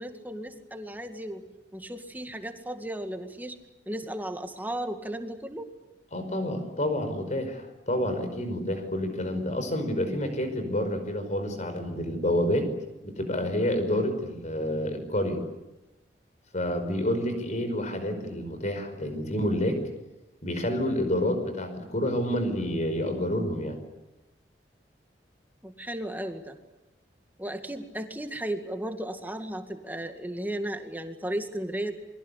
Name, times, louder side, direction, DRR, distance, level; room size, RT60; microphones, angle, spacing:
voice 1, 0.0-1.4 1.7-3.6 3.9-5.7 17.1-17.3 21.0-21.3 25.6-26.6 27.4-31.9, right 1 dB, 10° right, 6 dB, 2.2 m, -35 dB
voice 2, 6.1-12.7 13.0-15.4 16.5-19.8 20.4-23.8, left 1 dB, 40° left, 8 dB, 5.2 m, -28 dB
28.5 x 22.5 x 8.3 m, 1.0 s
head